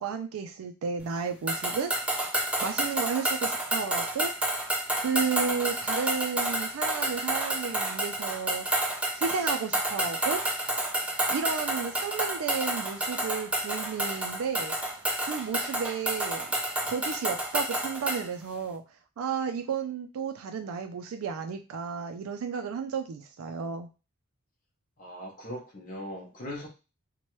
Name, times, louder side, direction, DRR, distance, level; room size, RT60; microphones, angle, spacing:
voice 1, 0.0-1.9 2.6-4.3 5.0-8.7 9.2-10.4 11.3-14.8 15.2-16.5 16.8-18.8 19.2-23.9, right 6 dB, 85° right, 6 dB, 0.3 m, -32 dB
sound 1, 1.5-18.3, right 1 dB, 5° right, 0.3 m, -30 dB
voice 2, 25.0-26.7, equal, 40° left, -3 dB, 0.7 m, -39 dB
3.0 x 2.2 x 3.0 m, 0.31 s
head